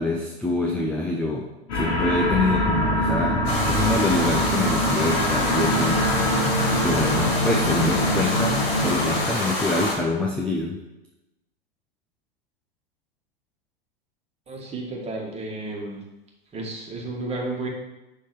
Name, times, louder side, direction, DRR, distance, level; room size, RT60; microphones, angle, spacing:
voice 1, 0.0-1.5 1.7-6.0 6.7-10.8, left 2 dB, 5° left, 0 dB, 0.4 m, -26 dB
sound 1, 1.7-9.2, equal, 45° left, 2.3 m, -24 dB
sound 2, 3.5-9.9, left 2 dB, 80° left, 1.9 m, -27 dB
voice 2, 14.5-16.0 16.5-17.7, right 2 dB, 20° right, -2 dB, 1.6 m, -32 dB
6.3 x 3.7 x 4.7 m, 0.98 s
hypercardioid pair, 110°, 30 cm